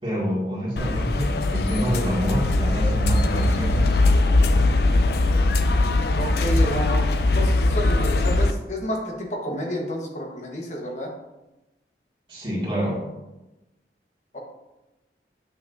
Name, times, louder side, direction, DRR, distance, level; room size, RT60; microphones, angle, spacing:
voice 1, 0.0-4.0 12.3-13.0, equal, 30° right, -8 dB, 2.1 m, -27 dB
sound 1, 0.8-8.5, left 2 dB, 65° left, 0.4 m, -20 dB
voice 2, 6.2-11.1 14.3-14.4, equal, 40° left, 0 dB, 1.2 m, -30 dB
8.1 x 6.0 x 2.6 m, 1.0 s
head